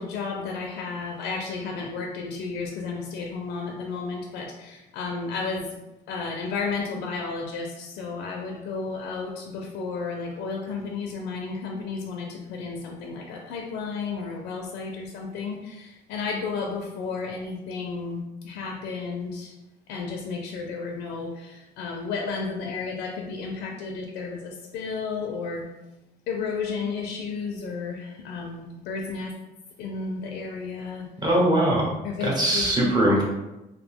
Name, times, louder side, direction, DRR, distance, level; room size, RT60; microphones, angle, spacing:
voice 1, 0.0-5.8 6.1-19.5 19.9-25.7 26.3-29.3 29.8-31.1 32.0-33.1, left 4 dB, 80° left, 0 dB, 0.4 m, -32 dB
voice 2, 31.2-31.9 32.2-33.3, right 1 dB, 25° right, -3 dB, 1.0 m, -21 dB
2.7 x 2.0 x 3.4 m, 0.98 s
cardioid pair, 110°, 17 cm